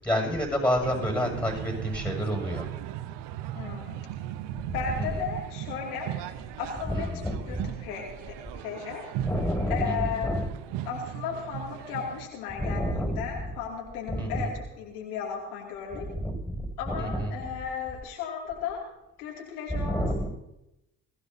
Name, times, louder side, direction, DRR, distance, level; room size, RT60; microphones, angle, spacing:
voice 1, 0.0-3.0 4.6-5.3 6.3-6.4 6.8-7.7 9.2-10.5 12.6-13.5 14.1-14.5 15.9-17.4 19.7-20.3, equal, 5° left, 0 dB, 7.1 m, -29 dB
sound 1, 0.8-12.3, right 12 dB, 70° right, 0.9 m, -37 dB
voice 2, 3.5-4.0 4.7-6.1 6.6-7.1 7.5-8.4 8.6-9.1 9.7-10.3 10.9-14.5 14.8-16.1 16.8-18.8 19.2-20.0, left 7 dB, 85° left, -2 dB, 2.8 m, -35 dB
22.5 x 15.0 x 2.8 m, 0.89 s
hypercardioid pair, 50°, 44 cm